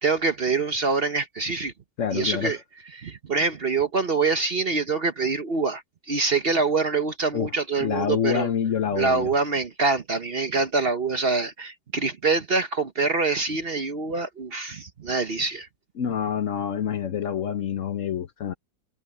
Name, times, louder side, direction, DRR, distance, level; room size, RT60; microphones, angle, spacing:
voice 1, 0.0-1.7 2.1-2.6 2.9-8.5 8.9-15.7, right 4 dB, 45° right, 1.0 m, -25 dB
voice 2, 2.0-2.5 7.3-7.5 7.8-9.3 16.0-18.5, left 8 dB, 60° left, 1.0 m, -27 dB
omnidirectional pair, 1.7 m